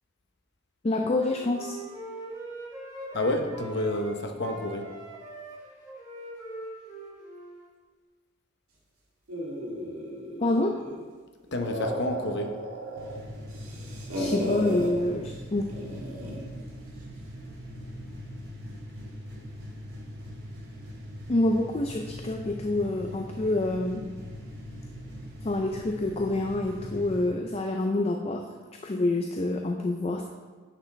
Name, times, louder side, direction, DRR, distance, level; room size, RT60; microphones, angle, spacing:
voice 1, 0.8-1.8 10.4-10.7 14.1-15.6 21.3-24.1 25.4-28.4 28.8-30.3, left 2 dB, 30° left, 3 dB, 0.4 m, -27 dB
Wind instrument woodwind instrument, 1.1-4.1 4.4-7.7, right 1 dB, 10° right, 2.4 m, -42 dB
voice 2, 3.1-4.9 11.5-12.6, left 1 dB, 50° left, 4 dB, 0.9 m, -29 dB
sound 1, 9.3-11.1 11.5-13.2 13.5-14.9 15.7-16.5, equal, 90° right, 1.8 m, -34 dB
sound 2, 13.0-27.3, equal, 70° right, 2.6 m, -41 dB
10.0 x 6.1 x 3.3 m, 1.4 s
head